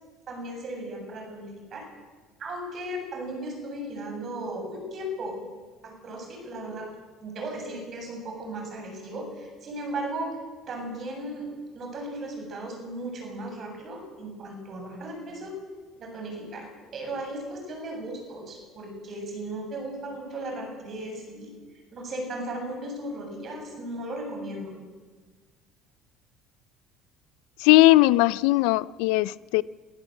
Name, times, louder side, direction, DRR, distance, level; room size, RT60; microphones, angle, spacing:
voice 1, 0.3-1.9 2.4-5.4 5.8-6.9 7.2-10.4 10.7-11.5 11.7-15.5 16.0-21.5 21.9-24.7, right 1 dB, 40° right, 7.3 m, -36 dB
voice 2, 27.6-29.6, left 18 dB, 85° left, 0.5 m, -19 dB
23.5 x 15.0 x 7.8 m
cardioid pair, 130°, 0 cm